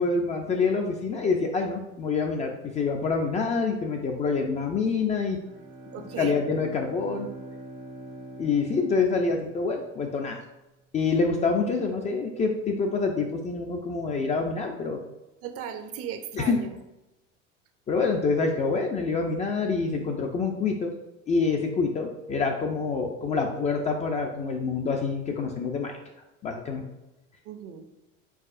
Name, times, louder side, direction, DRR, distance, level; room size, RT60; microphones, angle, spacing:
voice 1, 0.0-5.4 6.0-7.3 8.4-10.4 10.9-15.0 16.3-16.6 17.9-20.9 21.3-26.0 26.4-26.8, left 4 dB, 20° left, 2 dB, 0.3 m, -26 dB
Bowed string instrument, 5.3-10.0, right 1 dB, 80° right, 1.5 m, -44 dB
voice 2, 5.9-6.4 15.4-16.7 27.5-27.8, right 8 dB, 40° right, 8 dB, 0.5 m, -37 dB
4.7 x 4.0 x 2.5 m, 0.98 s
hypercardioid pair, 85°, 37 cm